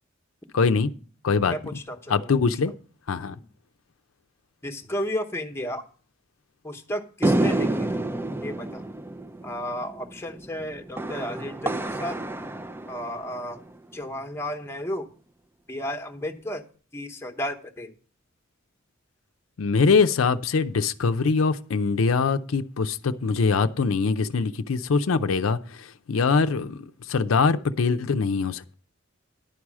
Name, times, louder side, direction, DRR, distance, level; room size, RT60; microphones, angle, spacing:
voice 1, 0.5-0.9 1.2-1.5 2.1-2.7 3.1-3.3 19.6-28.8, left 4 dB, 90° left, 0.5 m, -23 dB
voice 2, 1.5-2.4 3.4-3.5 4.6-5.8 6.6-8.0 8.4-8.8 9.4-12.2 12.9-13.6 13.9-15.1 15.7-16.6 16.9-17.9, equal, 10° left, 0.9 m, -33 dB
sound 1, 7.2-13.7, right 1 dB, 10° right, 0.3 m, -29 dB
10.5 x 4.8 x 7.2 m
head